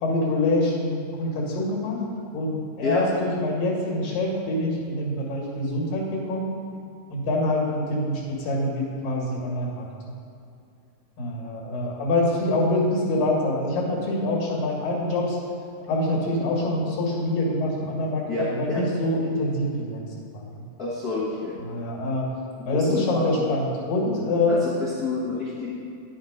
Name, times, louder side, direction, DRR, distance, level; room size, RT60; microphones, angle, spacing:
voice 1, 0.0-2.0 2.3-6.5 7.1-10.2 11.2-15.4 15.9-20.0 20.3-20.6 21.6-22.3 22.7-24.6, left 1 dB, 85° left, -3 dB, 3.7 m, -25 dB
voice 2, 18.3-18.8 20.8-21.6 22.6-23.3 24.5-25.7, left 3 dB, 40° left, -8 dB, 1.4 m, -28 dB
10.5 x 7.5 x 5.1 m, 2.5 s
omnidirectional pair, 3.9 m